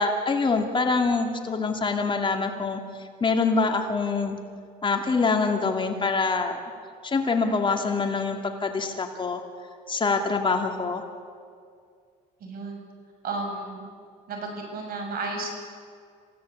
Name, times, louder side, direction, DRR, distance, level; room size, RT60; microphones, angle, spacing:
voice 1, 0.0-2.8 3.2-4.4 4.8-6.6 7.0-9.4 9.9-11.1, left 4 dB, 30° left, 4 dB, 2.5 m, -25 dB
voice 2, 12.4-12.8 13.2-13.8 14.3-15.5, right 3 dB, 60° right, 3 dB, 6.9 m, -33 dB
27.0 x 17.0 x 8.5 m, 2.2 s
cardioid pair, 110°, 17 cm